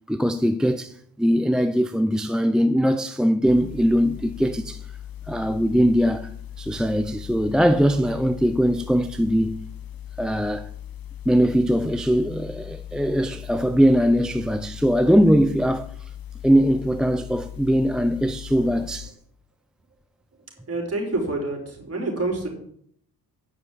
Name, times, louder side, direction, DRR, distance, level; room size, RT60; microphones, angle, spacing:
voice 1, 0.1-4.9 5.3-6.3 6.6-9.7 10.2-10.7 11.3-15.9 16.4-19.1, equal, ahead, 0.6 m, -21 dB
sound 1, 3.5-19.1, left 10 dB, 65° left, 0.9 m, -39 dB
voice 2, 20.6-22.5, right 2 dB, 40° right, 5.0 m, -28 dB
9.8 x 6.9 x 8.6 m
cardioid pair, 105°, 38 cm